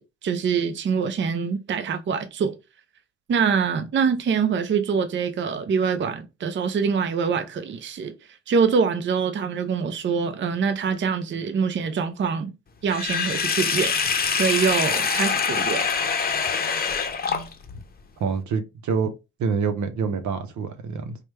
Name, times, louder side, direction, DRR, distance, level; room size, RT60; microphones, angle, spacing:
voice 1, 0.0-2.5 3.3-8.1 8.5-12.5 12.8-13.9 14.4-15.9, right 6 dB, 40° right, 0.6 m, -24 dB
Sink (filling or washing), 12.9-17.8, left 6 dB, 30° left, 0.7 m, -24 dB
voice 2, 18.2-19.1 19.4-21.2, right 5 dB, 70° right, 0.8 m, -26 dB
4.7 x 2.2 x 3.2 m
cardioid pair, 90°, 30 cm